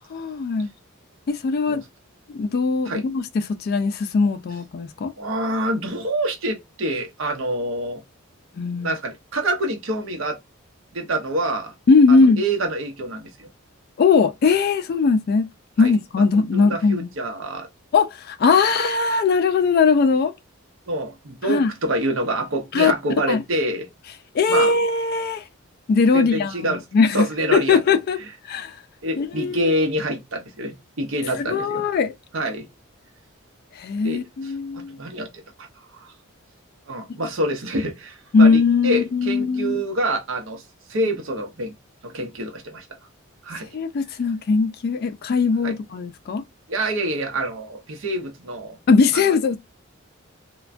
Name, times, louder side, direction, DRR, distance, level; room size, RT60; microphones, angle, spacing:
voice 1, 0.1-0.7 1.3-1.8 2.3-5.1 8.6-8.9 11.9-12.4 14.0-15.5 15.8-17.1 17.9-20.3 21.4-21.7 22.7-22.9 23.3-23.4 24.3-25.4 25.9-27.3 27.5-28.2 28.4-28.8 29.2-29.7 31.4-32.1 33.8-35.0 38.3-39.8 43.7-46.4 48.9-49.6, left 4 dB, 50° left, 0.3 m, -20 dB
voice 2, 5.2-8.0 8.8-10.4 10.9-11.7 12.1-13.5 15.8-15.9 16.5-17.7 20.9-23.9 24.5-24.7 26.1-26.8 27.1-27.8 29.0-31.8 32.3-32.7 34.0-35.3 35.9-36.1 36.9-40.6 40.9-41.7 42.0-42.9 43.4-43.7 45.6-45.7 46.7-48.8, right 1 dB, 65° right, 0.7 m, -26 dB
3.2 x 2.2 x 2.5 m
head